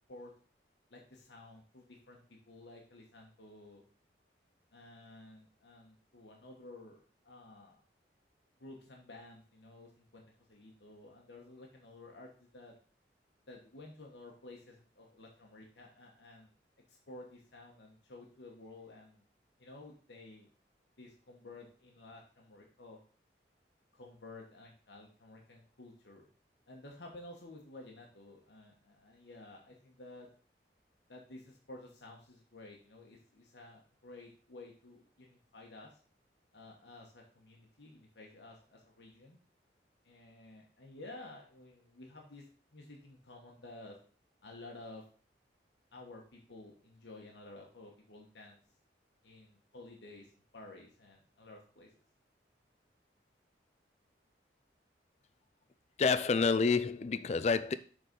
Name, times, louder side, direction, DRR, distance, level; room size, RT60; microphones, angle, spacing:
voice 1, 0.9-3.8 4.7-7.8 8.6-10.2 10.5-12.7 13.5-16.5 16.9-19.2 19.6-20.5 21.0-23.0 23.9-26.3 26.7-30.3 31.1-36.0 36.5-39.4 40.0-42.4 42.7-44.0 44.4-45.0 45.9-48.6 49.2-51.9, left 2 dB, 80° left, 1.2 m, -53 dB
voice 2, 56.0-57.7, left 4 dB, 40° left, 0.4 m, -28 dB
6.5 x 3.9 x 5.2 m
head